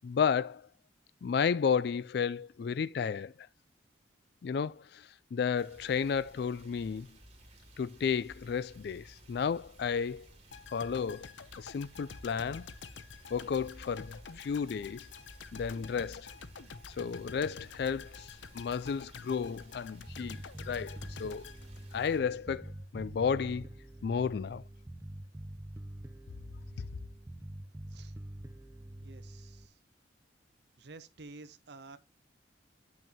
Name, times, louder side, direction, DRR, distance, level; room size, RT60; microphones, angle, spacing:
voice 1, 0.0-0.6 1.2-3.5 4.4-7.1 7.8-10.3 10.7-11.3 11.6-12.7 13.3-15.1 15.5-16.3 16.9-21.5 21.9-23.7 24.0-24.6, left 6 dB, 60° left, 0.3 m, -33 dB
sound 1, 5.5-22.2, equal, 35° right, 2.9 m, -55 dB
sound 2, 10.5-22.5 22.8-23.0, left 5 dB, 85° left, 0.7 m, -49 dB
Bass guitar, 20.1-29.7, right 1 dB, 15° right, 0.5 m, -46 dB
voice 2, 29.0-29.8 30.8-32.0, right 3 dB, 65° right, 0.9 m, -51 dB
8.8 x 6.2 x 2.9 m
head